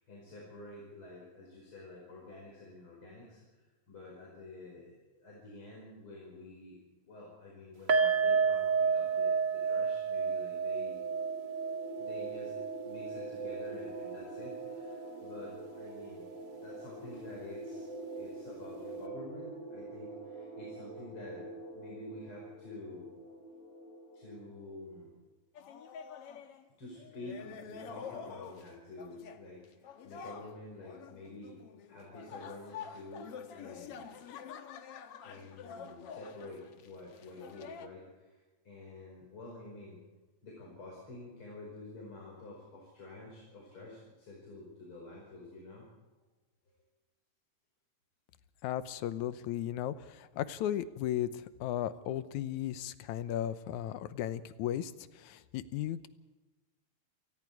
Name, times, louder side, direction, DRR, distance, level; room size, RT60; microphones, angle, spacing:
voice 1, 0.0-6.8 7.0-11.0 12.0-12.5 12.8-16.2 16.5-17.9 18.1-23.1 24.1-25.1 26.8-31.6 31.9-34.1 35.2-38.4 38.6-40.0 40.4-45.8, left 2 dB, 45° left, -3 dB, 5.9 m, -49 dB
sound 1, 7.9-15.1 15.4-15.5 15.9-16.0, right 5 dB, 40° right, 2.0 m, -31 dB
sound 2, 10.5-24.9, right 2 dB, 10° right, 7.3 m, -45 dB
sound 3, 25.5-26.6 26.9-28.7 29.0-29.4 29.8-37.9, left 7 dB, 60° left, 2.0 m, -47 dB
voice 2, 48.6-56.1, left 11 dB, 85° left, 13 dB, 2.2 m, -36 dB
28.5 x 19.0 x 4.8 m, 1.2 s
omnidirectional pair, 3.4 m